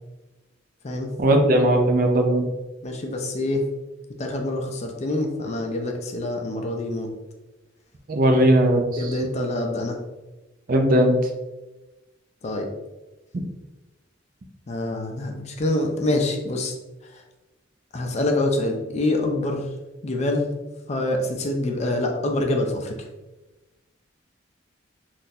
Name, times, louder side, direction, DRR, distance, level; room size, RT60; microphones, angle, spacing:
voice 1, 1.2-2.4 8.1-9.2 10.7-11.2, right 1 dB, 45° right, 4 dB, 0.4 m, -18 dB
voice 2, 2.8-3.7 4.2-7.1 9.0-10.0 12.4-12.7 14.7-16.7 17.9-19.6 20.0-20.5 20.9-23.1, left 2 dB, 35° left, 3 dB, 0.4 m, -25 dB
3.8 x 2.4 x 2.7 m, 1.1 s
head